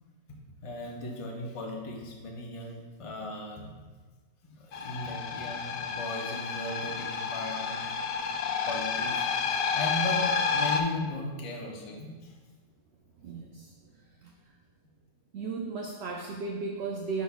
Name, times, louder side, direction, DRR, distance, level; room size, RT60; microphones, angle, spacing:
voice 1, 0.6-3.7 4.5-8.0 8.7-9.3 9.7-10.2 10.5-12.3, left 2 dB, 30° left, -1 dB, 0.6 m, -37 dB
sound 1, 4.7-10.8, left 5 dB, 80° left, 0.5 m, -30 dB
voice 2, 13.2-13.7 14.2-14.3 15.3-17.2, right 4 dB, 65° right, 0 dB, 0.6 m, -35 dB
11.0 x 4.1 x 2.3 m, 1.3 s
omnidirectional pair, 1.6 m